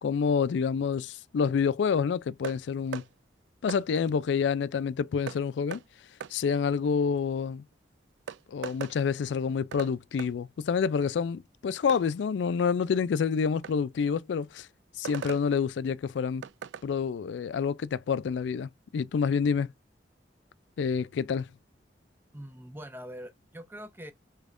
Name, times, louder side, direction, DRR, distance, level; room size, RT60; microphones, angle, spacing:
voice 1, 0.0-3.0 3.6-5.8 6.3-7.6 8.5-14.7 15.0-16.4 16.8-19.7 20.8-21.5, left 6 dB, 85° left, 0.3 m, -28 dB
sound 1, 2.4-2.6 2.9-3.1 3.7-3.8 5.3-5.4 5.7-5.8 6.2-6.3 7.7-7.8 8.3-9.0 9.7-9.9 10.2-10.3 11.9-12.0 13.6-13.8 15.0-15.4 16.4-16.9, right 7 dB, 85° right, 0.3 m, -38 dB
voice 2, 22.3-24.1, equal, 10° right, 0.5 m, -43 dB
3.4 x 3.1 x 2.4 m
head